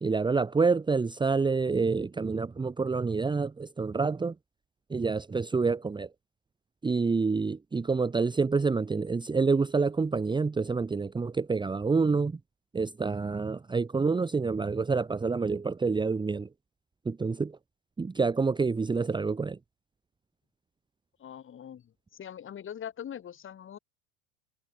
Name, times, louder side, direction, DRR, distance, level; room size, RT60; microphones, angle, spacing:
voice 1, 0.0-4.3 4.9-6.1 6.8-12.3 12.7-16.5 17.1-17.5 18.0-19.6, right 4 dB, 10° right, 1.2 m, -27 dB
voice 2, 21.2-23.8, left 9 dB, 30° left, 5.8 m, -42 dB
hypercardioid pair, 105°, 38 cm